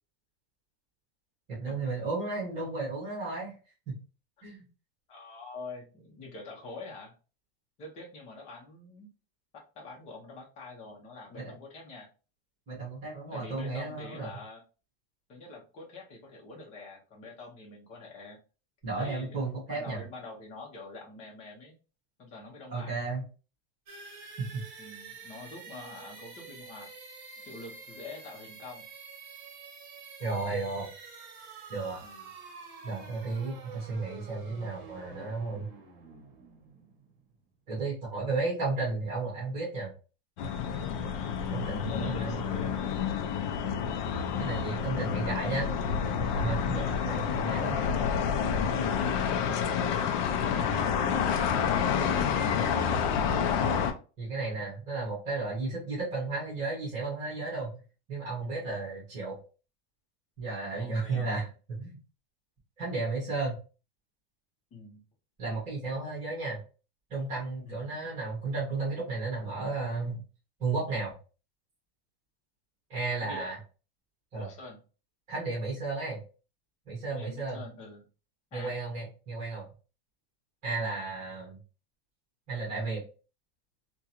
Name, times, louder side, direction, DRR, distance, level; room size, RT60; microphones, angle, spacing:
voice 1, 1.5-3.5 3.9-4.0 4.4-4.6 11.4-11.5 12.7-14.3 18.8-20.0 22.7-23.2 24.4-24.5 30.2-30.9 31.7-32.0 32.8-35.7 37.7-39.9 41.5-42.5 44.4-45.7 46.3-47.8 48.5-49.0 54.2-57.7 58.1-59.4 60.4-61.5 61.8-62.0 62.8-63.6 65.4-66.6 67.1-70.2 70.6-71.1 72.9-73.6 74.3-74.5 75.3-76.2 76.9-77.6 78.5-79.7 80.6-81.6 82.5-83.0, right 3 dB, 25° right, -6 dB, 1.5 m, -33 dB
voice 2, 5.1-7.1 7.8-9.2 9.5-12.1 13.3-14.6 15.3-18.4 19.0-21.8 22.2-22.9 24.8-26.9 27.4-28.9 32.0-32.3 41.6-43.0 46.7-47.0 50.4-51.6 52.1-52.9 60.8-61.5 64.7-65.0 67.6-67.9 73.2-73.5 74.3-74.8 77.1-78.1 78.5-78.7 80.8-81.0, left 3 dB, 20° left, -1 dB, 0.8 m, -46 dB
sound 1, 23.9-37.6, right 4 dB, 50° right, 1.1 m, -48 dB
sound 2, 40.4-53.9, left 7 dB, 50° left, 0.5 m, -29 dB
3.6 x 2.2 x 2.9 m, 0.34 s
supercardioid pair, 175°, 30 cm